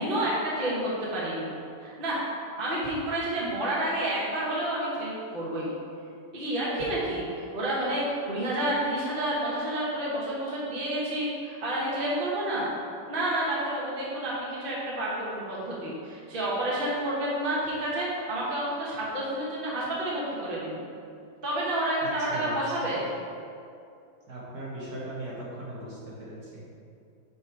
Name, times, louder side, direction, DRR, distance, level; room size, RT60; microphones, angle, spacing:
voice 1, 0.0-1.5 1.8-2.2 2.6-5.7 6.3-12.7 13.1-20.8 21.4-23.1, right 1 dB, 35° right, -6 dB, 1.4 m, -29 dB
voice 2, 22.3-22.7 24.3-26.7, right 1 dB, 60° right, -7 dB, 1.7 m, -38 dB
5.7 x 5.3 x 4.7 m, 2.5 s
omnidirectional pair, 1.9 m